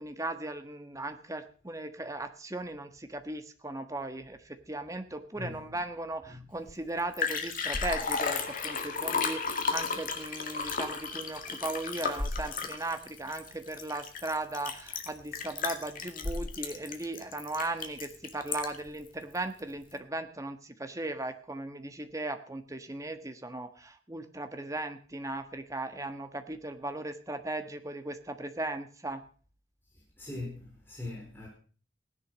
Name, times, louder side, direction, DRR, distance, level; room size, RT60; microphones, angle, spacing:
voice 1, 0.0-29.2, right 2 dB, 15° right, 1.5 m, -37 dB
voice 2, 5.3-5.8 6.3-6.5 30.2-31.5, left 2 dB, 10° left, 4.5 m, -41 dB
Liquid, 6.7-6.8 7.0-18.9 19.3-19.4, left 5 dB, 45° left, 2.1 m, -34 dB
16.5 x 11.0 x 6.3 m
head